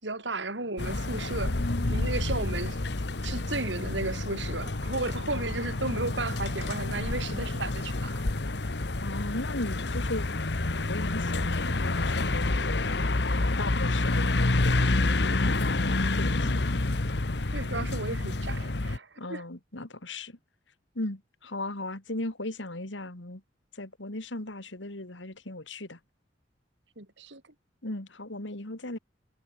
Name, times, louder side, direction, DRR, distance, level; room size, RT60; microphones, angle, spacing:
voice 1, 0.0-1.6 1.9-2.8 3.2-8.2 17.5-19.4 27.0-27.4, right 2 dB, 80° right, 6.0 m, -34 dB
sound 1, 0.8-19.0, left 2 dB, 65° left, 1.2 m, -28 dB
voice 2, 5.2-5.7 9.0-10.4 10.7-12.9 13.6-14.9 16.0-16.5 17.4-17.5 19.2-20.4 20.9-23.4 23.7-26.0 27.8-29.0, left 2 dB, 90° left, 3.3 m, -37 dB
head